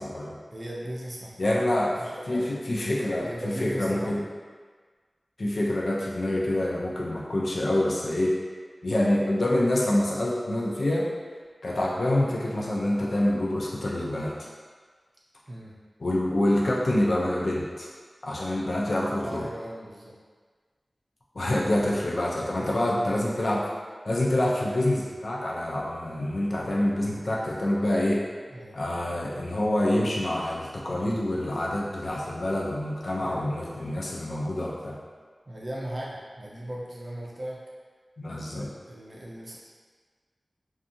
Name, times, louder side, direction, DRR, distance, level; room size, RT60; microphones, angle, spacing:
voice 1, 0.0-0.4 1.4-3.3 3.6-4.2 5.4-8.4 8.8-11.1 11.6-14.5 16.0-17.9 18.2-19.4 21.3-23.6 24.1-28.2 28.7-35.0 38.2-38.7, left 1 dB, 75° left, -3 dB, 0.5 m, -26 dB
voice 2, 0.5-1.6 2.0-2.6 3.2-4.3 15.5-15.8 19.2-20.1 22.4-22.8 28.5-28.8 33.0-33.9 35.5-37.6 38.3-39.6, right 1 dB, 50° right, -5 dB, 0.5 m, -38 dB
2.6 x 2.3 x 2.6 m, 1.5 s
wide cardioid pair, 80°, 0 cm